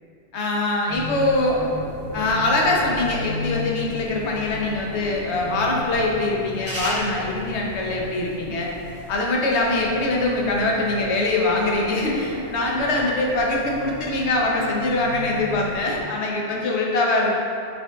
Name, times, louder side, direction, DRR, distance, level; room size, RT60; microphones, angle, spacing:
voice 1, 0.3-1.6 2.1-8.7 9.1-17.3, left 2 dB, 80° left, -2 dB, 1.0 m, -23 dB
sound 1, 0.9-16.0, left 1 dB, 45° right, 1.5 m, -35 dB
6.2 x 3.6 x 2.3 m, 2.5 s
omnidirectional pair, 1.1 m